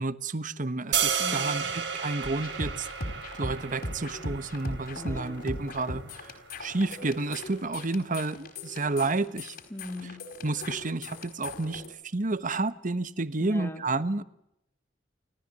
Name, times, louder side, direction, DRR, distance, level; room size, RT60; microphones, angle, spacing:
voice 1, 0.0-2.9 3.3-6.3 6.6-9.6 10.4-14.2, right 3 dB, 45° right, 1.2 m, -30 dB
sound 1, 0.9-7.0, right 7 dB, 70° right, 3.7 m, -33 dB
voice 2, 1.2-1.7 4.9-5.4 9.7-10.2 13.4-13.8, left 1 dB, 15° left, 2.7 m, -40 dB
sound 2, 2.2-11.9, left 1 dB, 55° left, 4.7 m, -39 dB
29.5 x 14.0 x 8.6 m
head